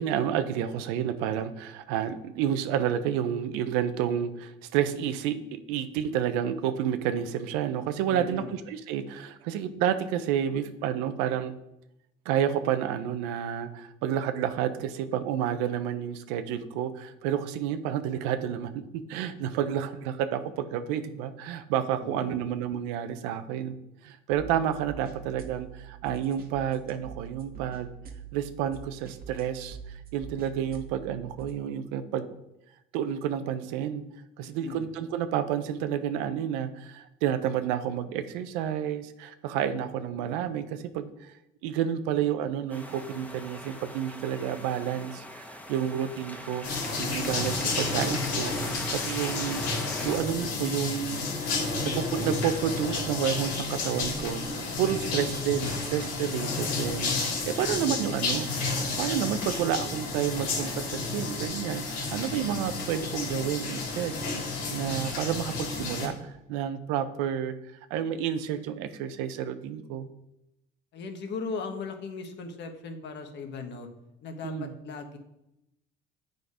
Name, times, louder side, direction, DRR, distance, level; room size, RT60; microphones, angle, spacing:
voice 1, 0.0-11.5 12.3-23.7 24.0-27.9 28.3-32.3 32.9-34.0 34.4-41.3 41.6-46.7 47.0-49.6 50.0-51.3 51.8-58.5 59.0-64.2 64.7-67.5 67.9-70.1 74.4-74.7, right 9 dB, 85° right, 10 dB, 0.7 m, -30 dB
voice 2, 8.1-8.5 22.0-22.4 34.4-34.9 57.7-58.2 70.9-73.9 74.2-75.2, left 4 dB, 55° left, 5 dB, 1.4 m, -38 dB
sound 1, 24.3-31.5, right 7 dB, 45° right, 1.3 m, -44 dB
sound 2, 42.7-50.2, left 1 dB, 5° left, 1.3 m, -41 dB
sound 3, 46.6-66.1, left 3 dB, 90° left, 3.0 m, -31 dB
7.9 x 5.2 x 4.8 m, 0.87 s
supercardioid pair, 85°, 21 cm